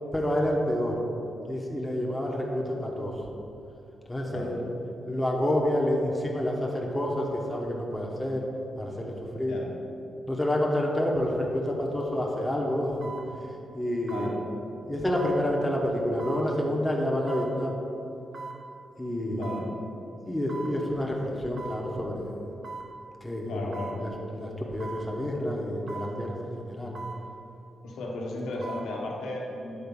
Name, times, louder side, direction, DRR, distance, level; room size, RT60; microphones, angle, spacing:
voice 1, 0.1-1.0 1.5-3.1 4.1-4.7 5.0-8.4 8.8-9.5 10.3-13.1 13.7-14.3 14.9-17.8 19.0-19.5 20.2-22.3 23.2-23.6 24.0-26.9, left 1 dB, 10° left, -2 dB, 1.1 m, -28 dB
voice 2, 4.2-4.6 9.4-9.7 14.1-14.4 19.2-19.7 23.5-24.0 27.8-29.9, left 2 dB, 85° left, -2 dB, 1.2 m, -35 dB
sound 1, 11.9-12.0 13.0-13.3 14.1-14.3 15.2-15.4 16.2-16.4 17.3-17.5 18.3-18.6 19.4-19.7 20.5-20.7 21.6-21.8 22.6-22.9 23.7-24.0 24.8-25.1 25.9-26.1 26.9-27.2 28.4-28.9 29.3-29.4, right 3 dB, 55° right, 1.0 m, -39 dB
8.1 x 3.9 x 5.4 m, 2.8 s
cardioid pair, 80°, 0 cm